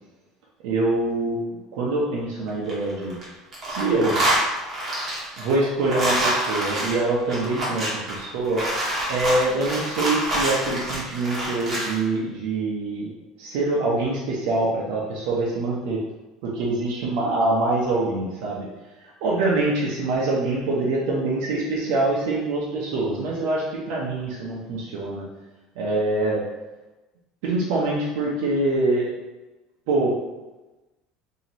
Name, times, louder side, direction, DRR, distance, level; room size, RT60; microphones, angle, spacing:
voice 1, 0.6-1.4 1.7-3.2 3.6-4.2 5.4-8.8 9.1-13.1 13.4-16.0 16.4-18.7 19.2-25.3 25.8-26.5 27.4-29.1 29.9-30.1, right 2 dB, 70° right, -5 dB, 0.7 m, -24 dB
sound 1, 2.5-3.2 3.5-12.0, right 1 dB, 20° right, 1.0 m, -26 dB
3.0 x 2.8 x 4.1 m, 1.1 s
cardioid pair, 175°, 0 cm